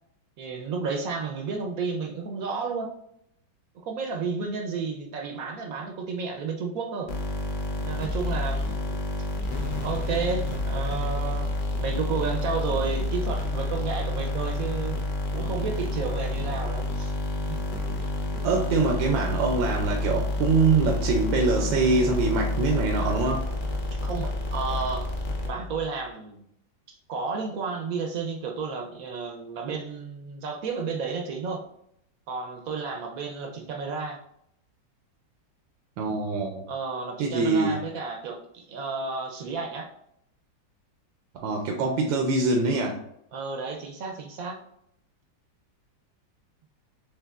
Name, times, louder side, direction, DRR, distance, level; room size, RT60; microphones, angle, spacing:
voice 1, 0.4-2.9 3.8-7.1 7.8-9.0 9.8-11.5 11.8-15.0 15.3-17.1 17.4-17.6 23.9-25.1 25.4-26.4 26.9-31.6 32.3-34.2 36.7-39.9 43.3-44.6, right 4 dB, 65° right, 3 dB, 0.9 m, -32 dB
sound 1, 7.1-25.9, left 2 dB, 50° left, 0.6 m, -29 dB
voice 2, 18.4-23.5 36.0-36.7 37.2-37.8 41.3-43.0, right 3 dB, 85° right, 2 dB, 1.3 m, -24 dB
6.7 x 3.3 x 2.4 m, 0.76 s
omnidirectional pair, 2.0 m